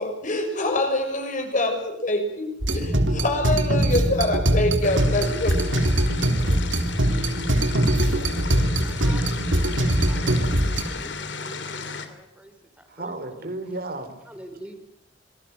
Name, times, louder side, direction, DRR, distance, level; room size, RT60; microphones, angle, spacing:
voice 1, 0.0-5.6, left 1 dB, 45° left, 5 dB, 6.6 m, -25 dB
sound 1, 2.6-10.8, right 1 dB, 85° right, 3.2 m, -22 dB
sound 2, 4.8-12.1, left 5 dB, 70° left, 3.0 m, -35 dB
voice 2, 8.5-13.2 14.3-14.8, right 1 dB, 5° right, 7 dB, 3.9 m, -44 dB
voice 3, 12.9-14.2, right 2 dB, 55° right, 7 dB, 3.5 m, -33 dB
26.0 x 20.0 x 9.4 m, 0.77 s
head